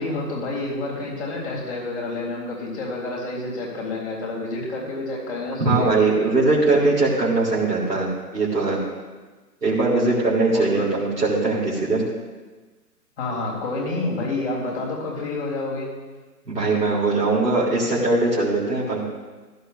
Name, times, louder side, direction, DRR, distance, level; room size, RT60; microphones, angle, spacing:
voice 1, 0.0-6.1 10.5-10.9 13.2-15.9, left 2 dB, 45° left, -3 dB, 3.8 m, -29 dB
voice 2, 5.6-8.1 8.3-8.8 9.6-12.1 16.5-19.0, right 3 dB, 75° right, -7 dB, 3.6 m, -20 dB
16.0 x 11.5 x 2.7 m, 1.3 s
figure-of-eight pair, 145°, 49 cm